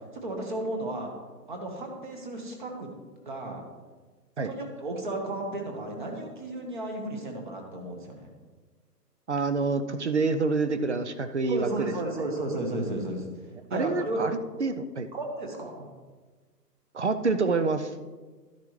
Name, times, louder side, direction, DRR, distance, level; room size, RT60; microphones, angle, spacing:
voice 1, 0.1-1.1 1.5-2.9 3.2-3.6 4.4-8.3 11.5-13.2 13.7-14.2 15.1-15.9, right 2 dB, 30° right, 3 dB, 1.2 m, -33 dB
voice 2, 9.3-11.9 13.7-15.1 16.9-17.9, right 4 dB, 45° right, 10 dB, 0.5 m, -27 dB
12.0 x 10.5 x 3.1 m, 1.4 s
hypercardioid pair, 165°, 50 cm